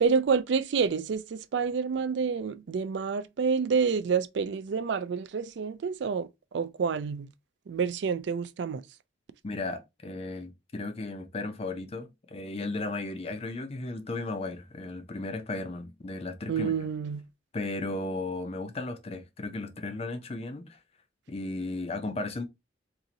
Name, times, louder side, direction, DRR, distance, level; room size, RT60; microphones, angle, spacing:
voice 1, 0.0-6.3 6.5-7.3 7.7-8.8 16.5-17.2, right 5 dB, 65° right, 0.3 m, -28 dB
voice 2, 9.4-16.9 17.5-20.8 21.3-22.4, left 2 dB, 35° left, 0.5 m, -35 dB
2.9 x 2.5 x 3.8 m
head